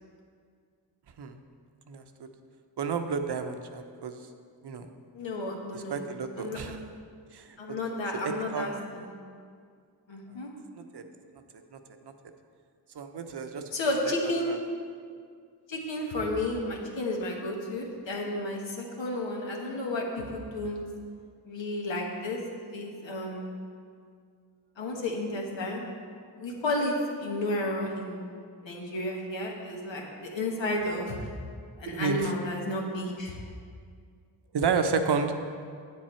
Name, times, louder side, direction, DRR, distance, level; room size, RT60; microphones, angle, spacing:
voice 1, 1.9-2.3 2.8-4.2 4.6-4.9 5.7-6.8 7.3-7.6 8.1-9.1 10.8-11.0 11.7-11.8 12.0-12.1 12.9-13.6 14.0-14.1 14.5-14.6 31.9-32.3 34.5-35.3, right 5 dB, 65° right, 7 dB, 0.8 m, -31 dB
voice 2, 5.1-6.0 6.4-6.6 7.6-9.1 10.1-10.5 13.7-14.6 15.7-20.8 21.5-22.4 22.7-23.6 24.8-25.8 26.4-26.9 27.2-28.3 28.6-30.0 30.3-31.3 31.8-33.4, left 1 dB, 80° left, 0 dB, 1.5 m, -32 dB
8.2 x 7.6 x 4.4 m, 2.1 s
cardioid pair, 60°, 44 cm